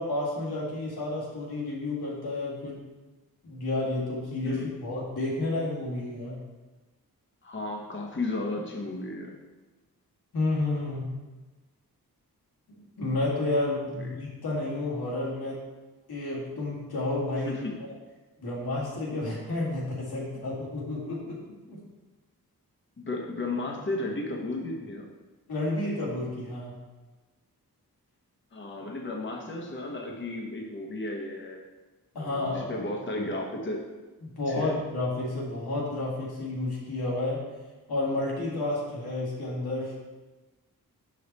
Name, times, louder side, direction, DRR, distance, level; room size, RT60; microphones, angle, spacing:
voice 1, 0.0-2.8 3.4-6.4 10.3-11.1 13.0-15.6 16.1-17.6 17.8-17.9 18.4-21.4 21.7-21.8 25.5-26.7 32.2-32.7 34.2-37.4 37.9-39.9, left 2 dB, 90° left, -5 dB, 2.0 m, -31 dB
voice 2, 7.4-9.3 14.0-14.1 17.4-17.8 23.0-25.1 28.5-31.6 32.1-33.8 34.5-34.8, left 2 dB, 35° left, 0 dB, 1.0 m, -34 dB
5.7 x 5.3 x 4.1 m, 1.2 s
cardioid pair, 80°, 36 cm